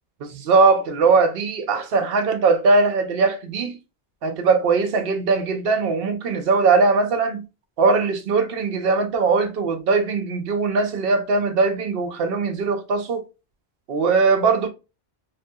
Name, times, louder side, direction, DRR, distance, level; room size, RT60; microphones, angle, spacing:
voice 1, 0.2-3.8 4.2-7.4 7.8-13.2 13.9-14.7, right 4 dB, 65° right, 0.8 m, -20 dB
3.4 x 2.7 x 2.2 m
omnidirectional pair, 1.1 m